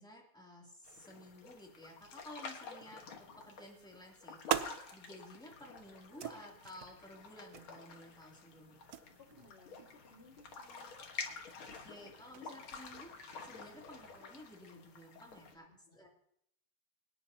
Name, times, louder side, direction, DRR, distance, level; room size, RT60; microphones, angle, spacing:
voice 1, 0.0-4.6 4.9-8.8 11.6-13.1 13.4-15.7 15.9-16.1, left 1 dB, ahead, -2 dB, 2.6 m, -54 dB
sound 1, 0.8-15.5, left 4 dB, 80° left, 2.4 m, -50 dB
sound 2, 3.8-14.2, right 10 dB, 65° right, 0.9 m, -45 dB
voice 2, 9.1-11.0 15.4-16.1, left 3 dB, 30° left, 1 dB, 2.0 m, -62 dB
24.5 x 10.5 x 2.8 m, 0.71 s
omnidirectional pair, 2.3 m